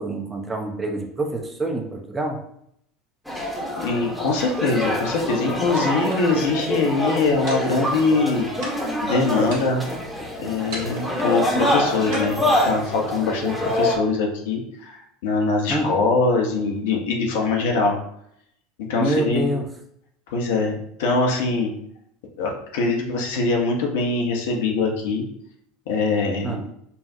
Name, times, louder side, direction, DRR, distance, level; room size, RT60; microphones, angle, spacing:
voice 1, 0.0-2.4 15.7-16.0 18.9-19.7 26.4-26.7, right 2 dB, 20° right, 2 dB, 0.8 m, -26 dB
sound 1, 3.3-14.0, left 1 dB, ahead, 1.1 m, -25 dB
voice 2, 3.7-8.5 9.0-9.9 10.4-18.0 18.8-19.5 20.3-21.7 22.4-25.2 25.9-26.6, left 3 dB, 65° left, 0 dB, 0.9 m, -23 dB
sound 2, 5.8-6.6 7.5-8.3 8.6-9.1 9.5-10.0 10.7-11.3 12.1-13.0, right 1 dB, 60° right, 1.3 m, -38 dB
5.5 x 2.4 x 2.7 m, 0.73 s
hypercardioid pair, 75°, 0 cm